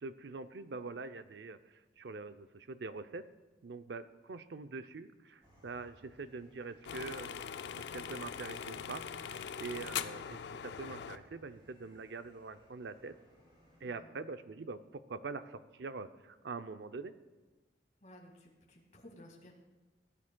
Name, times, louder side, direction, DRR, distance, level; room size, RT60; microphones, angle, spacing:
voice 1, 0.0-3.2 3.6-7.4 7.9-13.2 13.8-17.1, right 4 dB, 80° right, 11 dB, 0.5 m, -44 dB
sound 1, 5.4-13.8, equal, 30° right, 2.8 m, -63 dB
sound 2, 6.9-11.2, left 8 dB, 80° left, 0.4 m, -41 dB
voice 2, 18.0-19.5, left 1 dB, 45° left, 0 dB, 1.9 m, -56 dB
17.5 x 10.0 x 2.3 m, 1.2 s
head